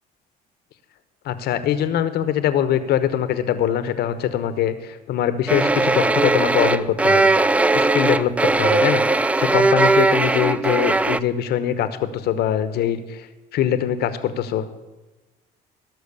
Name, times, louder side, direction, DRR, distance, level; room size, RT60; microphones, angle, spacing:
voice 1, 1.2-7.3 7.7-13.3 13.5-14.8, left 10 dB, 70° left, 12 dB, 1.0 m, -23 dB
Violin scratch, 5.5-11.2, right 3 dB, 10° right, 0.3 m, -18 dB
17.0 x 6.3 x 6.8 m, 1.2 s
cardioid pair, 110°, 17 cm